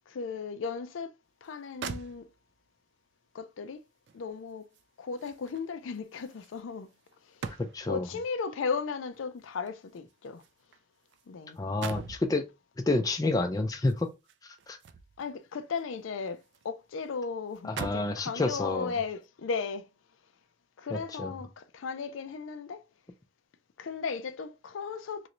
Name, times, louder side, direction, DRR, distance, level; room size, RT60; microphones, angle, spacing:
voice 1, 0.1-1.1 1.4-2.3 3.3-3.8 4.1-4.7 5.0-6.9 7.2-7.6 7.9-10.4 11.3-11.6 15.2-19.9 20.8-22.9 23.8-25.3, left 5 dB, 85° left, 0.4 m, -36 dB
sound 1, 1.4-1.5 1.8-2.7 4.1-8.0 9.1-11.3 11.5-12.3 13.8-15.3 15.8-16.7 17.0-17.1 17.5-18.2 18.9-19.1, right 6 dB, 60° right, 0.3 m, -44 dB
voice 2, 7.7-8.1 11.6-12.5 12.9-14.1 14.4-14.8 17.6-18.9 20.9-21.3, left 2 dB, 20° left, 0.3 m, -29 dB
3.1 x 2.5 x 2.9 m
head